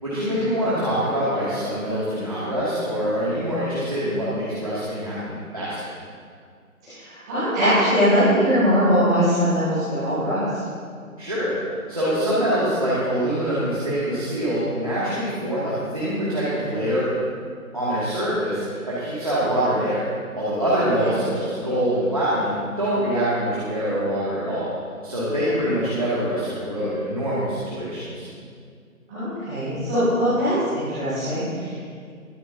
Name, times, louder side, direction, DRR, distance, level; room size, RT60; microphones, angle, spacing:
voice 1, 0.0-5.8 11.2-11.5 11.9-17.0 17.7-20.0 20.4-24.7 25.0-28.3, equal, 25° right, -11 dB, 2.2 m, -24 dB
voice 2, 6.8-10.5 25.4-25.6 29.1-31.7, equal, 5° right, -21 dB, 2.8 m, -21 dB
22.0 x 11.0 x 2.7 m, 2.1 s
figure-of-eight pair, 180°, 44 cm